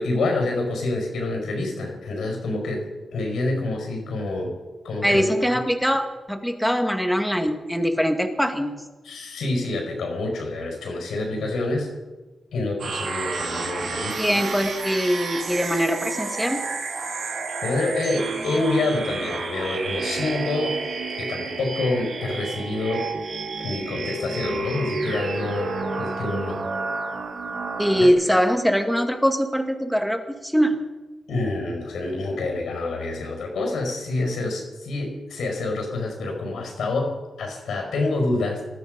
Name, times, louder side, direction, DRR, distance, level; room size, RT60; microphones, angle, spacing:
voice 1, 0.0-2.8 3.1-4.5 4.8-5.6 9.0-11.9 12.5-14.2 17.1-20.8 21.2-23.1 23.6-25.7 26.0-26.6 28.0-28.1 31.3-38.6, left 2 dB, 90° left, 2 dB, 5.0 m, -27 dB
voice 2, 5.0-8.9 14.2-16.7 27.8-30.8, equal, ahead, 5 dB, 2.0 m, -22 dB
sound 1, 12.8-28.1, right 3 dB, 75° right, 2.4 m, -30 dB
20.0 x 13.0 x 5.2 m, 1.2 s
cardioid pair, 85°, 0 cm